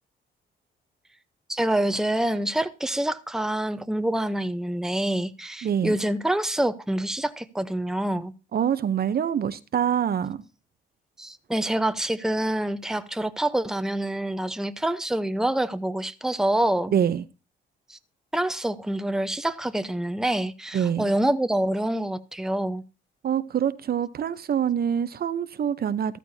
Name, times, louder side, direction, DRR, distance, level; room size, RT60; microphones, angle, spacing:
voice 1, 1.5-8.3 11.2-16.9 17.9-18.0 18.3-22.8, right 1 dB, 5° right, 0.8 m, -26 dB
voice 2, 5.6-6.0 8.5-10.4 16.9-17.2 20.7-21.1 23.2-26.2, right 8 dB, 50° right, 0.8 m, -25 dB
14.0 x 13.5 x 2.8 m
cardioid pair, 90°, 20 cm